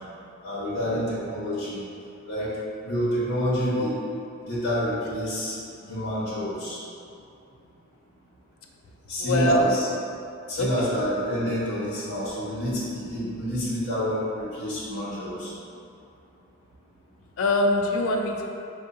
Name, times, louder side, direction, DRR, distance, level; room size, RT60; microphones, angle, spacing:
voice 1, 0.4-1.8 2.3-2.5 2.8-3.9 4.4-5.5 5.9-6.8 9.1-9.9 10.5-15.5, equal, 50° left, -11 dB, 1.1 m, -28 dB
voice 2, 9.2-9.7 10.6-10.9 17.4-18.5, left 1 dB, 75° left, 2 dB, 0.4 m, -24 dB
4.5 x 2.5 x 2.6 m, 2.6 s
head